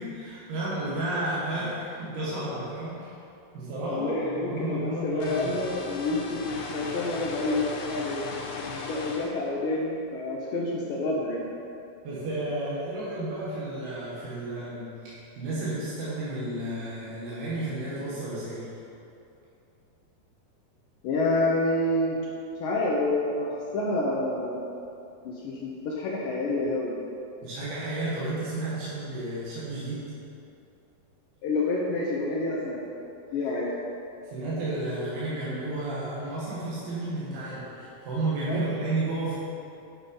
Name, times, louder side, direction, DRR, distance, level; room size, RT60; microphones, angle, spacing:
voice 1, 0.0-3.1 3.5-5.5 12.0-18.7 27.4-30.1 34.2-39.4, right 2 dB, 85° right, -9 dB, 3.8 m, -32 dB
voice 2, 3.9-11.5 21.0-22.2 22.6-24.6 25.2-27.0 31.4-32.9 33.3-33.7 38.5-38.7, left 2 dB, 70° left, -5 dB, 2.4 m, -28 dB
sound 1, 5.2-9.3, left 3 dB, 90° left, 2.9 m, -37 dB
10.5 x 5.8 x 5.4 m, 2.7 s
omnidirectional pair, 4.3 m